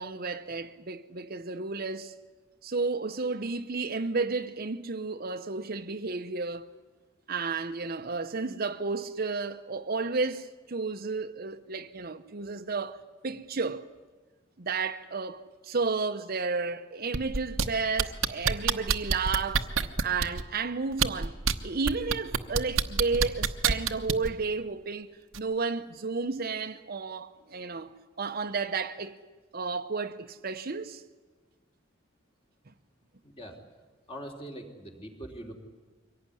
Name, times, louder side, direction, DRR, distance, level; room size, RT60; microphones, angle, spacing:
voice 1, 0.0-2.1 2.6-6.7 7.3-13.0 13.2-13.8 14.6-21.4 21.6-29.2 29.5-31.0, right 4 dB, 50° right, 0.8 m, -32 dB
sound 1, 17.1-17.6 18.0-20.4 20.9-21.5 21.9-24.3 25.3-25.4, right 6 dB, 85° right, 1.0 m, -25 dB
voice 2, 33.2-33.6 34.1-35.5, right 1 dB, 30° left, 3.4 m, -42 dB
23.5 x 17.5 x 10.0 m
head